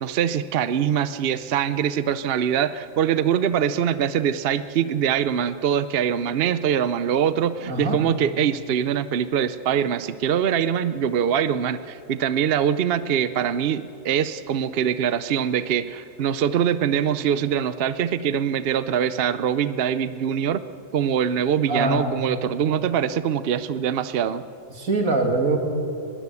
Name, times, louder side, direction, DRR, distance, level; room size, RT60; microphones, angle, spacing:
voice 1, 0.0-20.6 20.9-24.4, right 8 dB, 55° right, 13 dB, 0.8 m, -23 dB
voice 2, 7.7-8.0 21.7-22.1 24.8-25.6, right 2 dB, 85° right, 3 dB, 2.8 m, -22 dB
20.5 x 17.5 x 8.4 m, 2.7 s
omnidirectional pair, 1.4 m